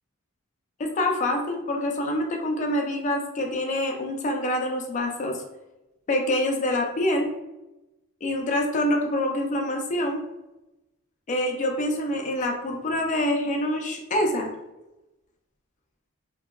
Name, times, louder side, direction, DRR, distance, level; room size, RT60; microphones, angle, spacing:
voice 1, 0.8-5.4 6.1-7.3 8.2-10.2 11.3-14.5, left 1 dB, 35° left, 2 dB, 0.3 m, -26 dB
2.6 x 2.2 x 2.2 m, 1.0 s
head